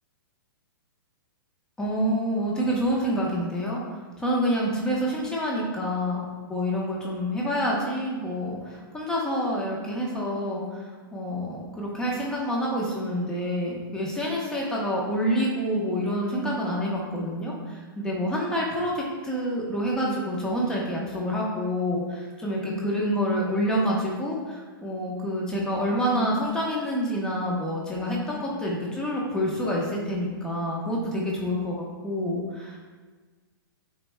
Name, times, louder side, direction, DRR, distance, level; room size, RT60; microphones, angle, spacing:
voice 1, 1.8-3.8 4.2-32.8, equal, 5° left, -3 dB, 1.0 m, -27 dB
13.0 x 4.6 x 2.3 m, 1.4 s
hypercardioid pair, 165°, 12 cm